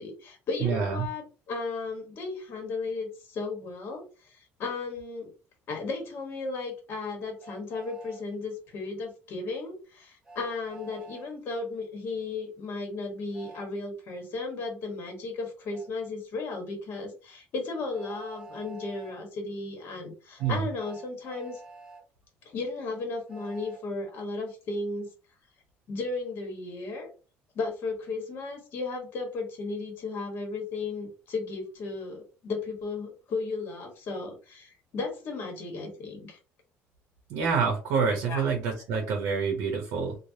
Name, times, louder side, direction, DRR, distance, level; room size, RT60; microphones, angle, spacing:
voice 1, 0.0-5.3 5.7-21.6 22.4-25.1 25.9-27.1 27.5-36.4 38.3-38.5, left 3 dB, 50° left, 3 dB, 1.1 m, -35 dB
voice 2, 0.6-1.1 20.4-20.6 37.3-40.2, right 5 dB, 85° right, 3 dB, 0.7 m, -27 dB
Train, 7.4-8.2 10.2-11.3 13.3-13.7 15.7-15.9 17.9-19.1 20.4-22.0 23.3-23.8, right 3 dB, 15° right, 0.5 m, -47 dB
3.2 x 2.1 x 2.6 m, 0.35 s
cardioid pair, 155°, 5 cm